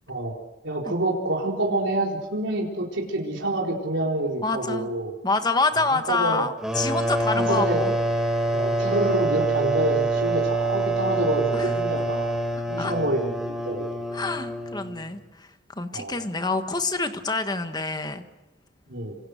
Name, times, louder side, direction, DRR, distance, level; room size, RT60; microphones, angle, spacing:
voice 1, 0.6-5.1 6.1-6.4 7.4-7.8 8.5-12.4 12.7-13.3 13.6-13.8 15.9-16.2 18.9-19.2, right 1 dB, 80° right, -1 dB, 4.3 m, -27 dB
voice 2, 4.4-4.9 5.2-7.9 11.5-11.7 12.8-12.9 14.1-15.5 15.7-18.2, left 3 dB, 20° left, 8 dB, 1.5 m, -27 dB
sound 1, 6.6-15.1, right 2 dB, 5° right, 3.7 m, -26 dB
27.5 x 27.0 x 6.6 m, 1.1 s
head